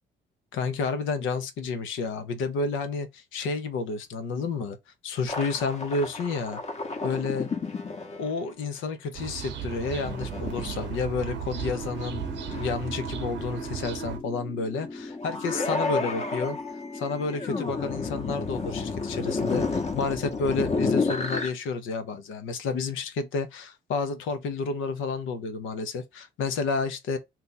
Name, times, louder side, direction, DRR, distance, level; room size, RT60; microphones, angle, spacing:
voice 1, 0.5-4.8 5.0-6.6 7.0-7.5 8.2-16.6 16.9-27.2, left 4 dB, 85° left, 0.7 m, -30 dB
sound 1, 5.3-8.4 9.7-11.2 11.7-12.1 12.4-13.0 13.7-13.8 15.1-21.5, left 3 dB, 35° left, 0.9 m, -31 dB
sound 2, 9.1-14.2, right 8 dB, 65° right, 0.7 m, -35 dB
sound 3, 11.6-18.1, left 3 dB, 15° left, 0.4 m, -40 dB
2.8 x 2.4 x 3.8 m
cardioid pair, 90°, 20 cm